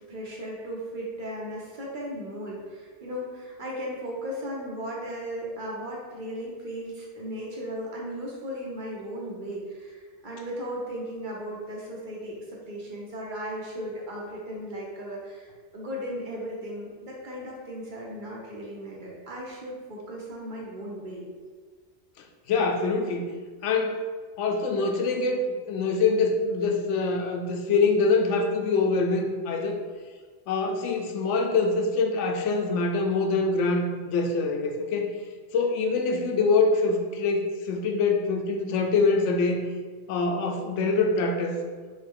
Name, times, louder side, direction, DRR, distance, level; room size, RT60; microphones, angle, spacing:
voice 1, 0.1-21.2, equal, 50° right, -3 dB, 0.9 m, -36 dB
voice 2, 22.5-23.3 23.6-24.1 24.4-25.4 25.7-29.8 30.5-35.1 35.5-39.6 40.1-41.5, left 4 dB, 90° left, 3 dB, 0.9 m, -24 dB
3.7 x 3.1 x 3.6 m, 1.5 s
omnidirectional pair, 1.2 m